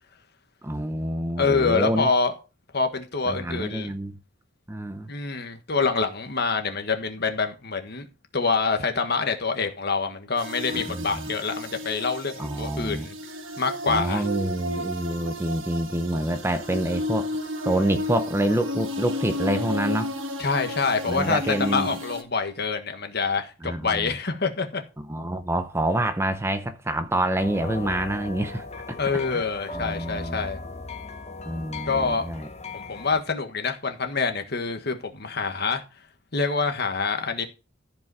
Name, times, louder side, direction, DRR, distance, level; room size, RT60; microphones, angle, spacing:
voice 1, 0.6-2.1 3.3-4.1 4.7-5.1 10.7-11.3 12.4-13.1 13.9-17.3 17.6-20.1 21.1-21.9 23.6-24.1 25.1-29.0 29.3-29.4 29.7-30.4 31.4-32.5, right 1 dB, 10° right, 0.7 m, -27 dB
voice 2, 1.4-2.3 2.7-3.9 5.1-8.1 8.3-13.1 13.6-14.2 20.4-24.8 29.0-30.6 31.9-32.3 32.7-35.8 36.3-37.5, left 4 dB, 50° left, 1.5 m, -26 dB
sound 1, 10.4-22.2, left 1 dB, 70° right, 1.4 m, -33 dB
sound 2, 27.4-33.2, left 3 dB, 30° left, 0.9 m, -38 dB
14.0 x 5.1 x 4.8 m
head